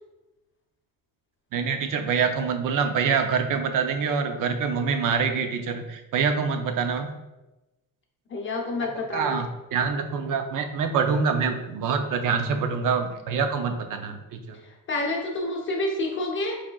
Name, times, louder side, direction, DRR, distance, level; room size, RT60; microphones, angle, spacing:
voice 1, 1.5-7.2 9.1-14.6, right 5 dB, 65° right, 7 dB, 0.6 m, -25 dB
voice 2, 8.3-9.4 14.6-16.6, left 2 dB, 35° left, 0 dB, 0.7 m, -29 dB
4.9 x 4.2 x 2.3 m, 1.0 s
cardioid pair, 150°, 34 cm